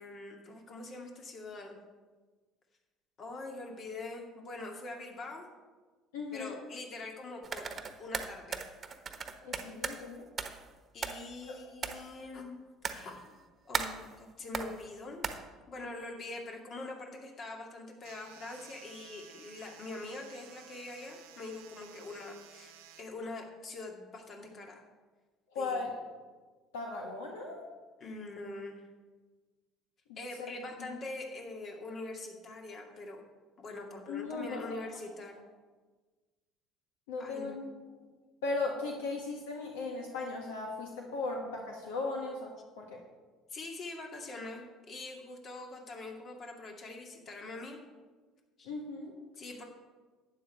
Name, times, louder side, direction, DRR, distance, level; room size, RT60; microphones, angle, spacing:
voice 1, 0.0-1.8 3.2-5.5 6.3-7.7 8.0-8.6 10.9-12.6 12.9-13.4 13.6-15.3 15.7-24.8 25.6-25.9 28.0-28.9 30.2-33.2 33.6-35.4 37.2-37.6 43.5-47.8 48.6-48.7 49.4-49.6, left 2 dB, 45° left, 1 dB, 2.4 m, -44 dB
voice 2, 6.1-6.6 9.4-10.3 11.5-11.6 25.5-25.9 26.7-27.6 30.1-30.5 30.8-30.9 34.1-34.9 37.1-37.7 38.4-43.0 48.6-49.1, left 3 dB, 80° left, 0 dB, 1.5 m, -37 dB
sound 1, 7.4-10.0 10.4-10.7 11.0-11.4 11.8-12.0 12.8-13.3 13.7-14.1 14.5-14.8 15.2-15.4, right 5 dB, 35° right, 1.2 m, -36 dB
sound 2, 18.0-23.0, right 10 dB, 75° right, 1.1 m, -55 dB
12.0 x 9.3 x 4.4 m, 1.3 s
hypercardioid pair, 60°, 0 cm